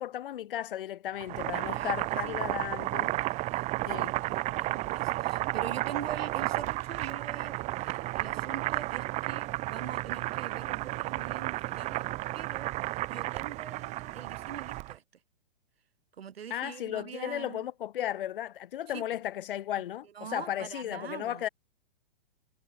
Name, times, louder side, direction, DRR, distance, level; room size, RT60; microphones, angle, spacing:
voice 1, 0.0-3.2 3.9-4.2 16.5-21.5, left 12 dB, 65° left, 2.7 m, -35 dB
Boiling, 1.1-15.0, right 19 dB, 25° right, 1.1 m, -33 dB
voice 2, 1.5-12.1 12.3-15.0 16.2-17.7 18.9-19.1 20.1-21.5, right 8 dB, 85° right, 5.9 m, -44 dB
hypercardioid pair, 155°, 29 cm